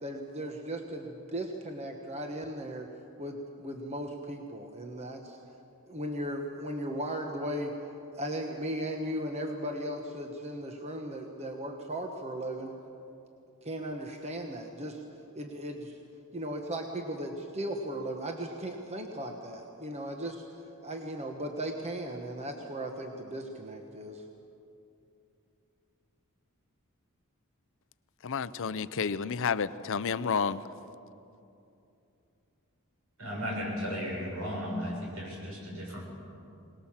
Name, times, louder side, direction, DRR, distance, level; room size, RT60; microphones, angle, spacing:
voice 1, 0.0-2.9 3.2-5.4 5.9-7.8 8.1-12.8 13.6-15.0 15.3-16.0 16.3-20.4 20.8-24.2, right 1 dB, 30° right, 3 dB, 1.2 m, -37 dB
voice 2, 28.2-30.6, left 6 dB, 60° left, 15 dB, 0.6 m, -30 dB
voice 3, 33.2-36.1, equal, 70° right, -1 dB, 6.7 m, -35 dB
22.0 x 20.0 x 7.3 m, 2.8 s
head